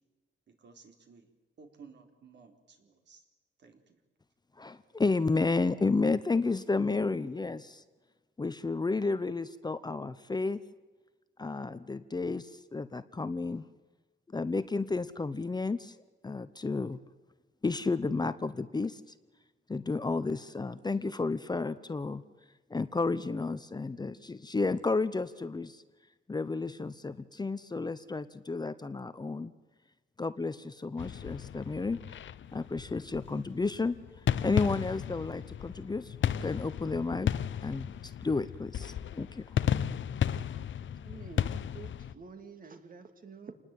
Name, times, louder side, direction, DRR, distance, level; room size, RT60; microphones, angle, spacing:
voice 1, 0.6-1.3 1.6-3.2 3.6-4.0, right 5 dB, 60° right, 5 dB, 4.1 m, -55 dB
voice 2, 4.6-7.8 8.4-10.6 11.4-13.7 14.3-15.9 16.2-17.0 17.6-19.0 19.7-22.2 22.7-25.8 26.3-29.5 30.2-32.0 32.5-33.9 34.4-36.2 36.4-37.3 37.6-39.5, left 3 dB, 20° left, 13 dB, 0.8 m, -32 dB
sound 1, 31.0-42.1, left 9 dB, 70° left, 0.8 m, -34 dB
voice 3, 41.0-43.5, right 5 dB, 45° right, 8 dB, 2.6 m, -48 dB
28.0 x 20.0 x 9.2 m, 1.3 s
wide cardioid pair, 140°, 20 cm